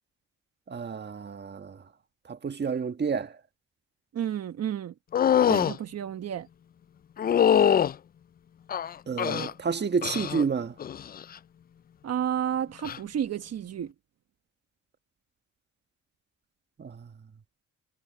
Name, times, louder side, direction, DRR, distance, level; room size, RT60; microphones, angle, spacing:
voice 1, 0.7-1.8 2.3-3.3 9.1-10.7 16.8-17.1, right 5 dB, 35° right, 1.6 m, -30 dB
voice 2, 4.1-4.9 5.5-6.5 12.0-13.9, right 9 dB, 55° right, 1.2 m, -31 dB
sound 1, 5.1-5.8 7.2-7.9 8.7-9.5 10.0-10.4 10.8-11.2 12.8-13.0, left 9 dB, 30° left, 0.4 m, -23 dB
cardioid pair, 90°, 30 cm